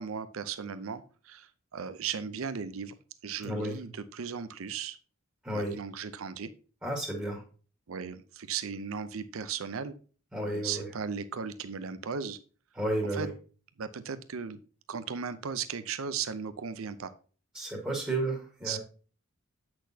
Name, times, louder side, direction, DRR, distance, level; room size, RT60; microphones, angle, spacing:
voice 1, 0.0-3.0 3.2-5.0 5.5-6.5 7.9-9.9 10.4-12.4 13.1-13.3 13.8-14.6 14.9-17.1 18.6-18.8, right 6 dB, 85° right, 13 dB, 0.6 m, -36 dB
voice 2, 3.4-3.8 5.4-5.8 6.8-7.4 10.3-10.9 12.8-13.3 17.5-18.8, right 1 dB, 10° right, -1 dB, 1.6 m, -32 dB
8.3 x 6.2 x 2.8 m, 0.38 s
head